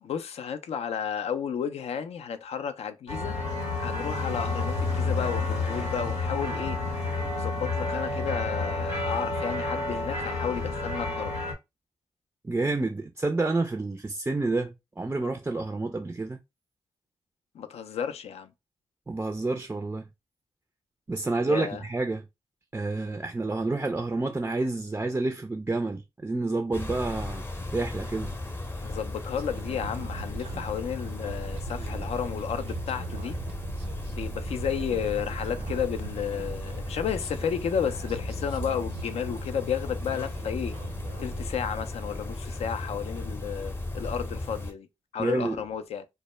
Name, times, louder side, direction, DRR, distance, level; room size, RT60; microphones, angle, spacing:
voice 1, 0.0-3.4 3.8-6.8 7.3-11.4 17.5-18.5 21.5-21.8 28.8-33.4 34.1-40.8 41.2-44.9 45.1-46.1, left 8 dB, 70° left, 0.4 m, -32 dB
sound 1, 3.1-11.5, left 3 dB, 85° left, 0.8 m, -30 dB
voice 2, 12.4-16.4 19.1-20.1 21.1-22.3 22.7-27.4 27.7-28.3 45.2-45.6, right 2 dB, 20° right, 0.3 m, -29 dB
sound 2, 26.7-44.7, left 2 dB, 20° left, 0.6 m, -36 dB
sound 3, 29.4-41.5, right 5 dB, 75° right, 0.5 m, -41 dB
2.1 x 2.0 x 3.1 m
supercardioid pair, 45°, 11 cm